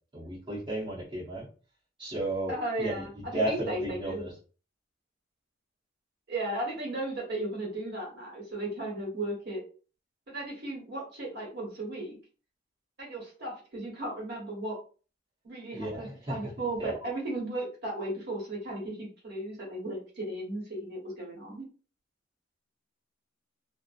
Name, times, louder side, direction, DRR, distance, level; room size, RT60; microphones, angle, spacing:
voice 1, 0.1-1.5 2.0-3.0 3.3-4.3 15.7-16.3 16.8-17.1, right 1 dB, 25° right, -7 dB, 0.7 m, -33 dB
voice 2, 2.5-4.3 6.3-9.6 10.3-12.2 13.0-14.8 15.4-21.6, right 1 dB, 60° right, -3 dB, 1.2 m, -35 dB
2.6 x 2.0 x 2.4 m, 0.37 s
head